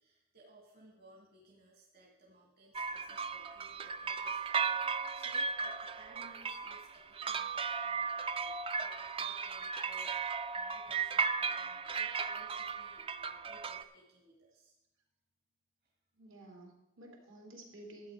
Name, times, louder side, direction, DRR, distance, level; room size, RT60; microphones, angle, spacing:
voice 1, 0.0-14.7 15.8-15.9, right 2 dB, 50° right, -3 dB, 2.2 m, -61 dB
sound 1, 2.7-13.8, right 5 dB, 25° right, 0.4 m, -36 dB
voice 2, 16.2-18.1, right 1 dB, 75° right, 0 dB, 2.7 m, -52 dB
12.5 x 8.5 x 5.0 m, 0.94 s
head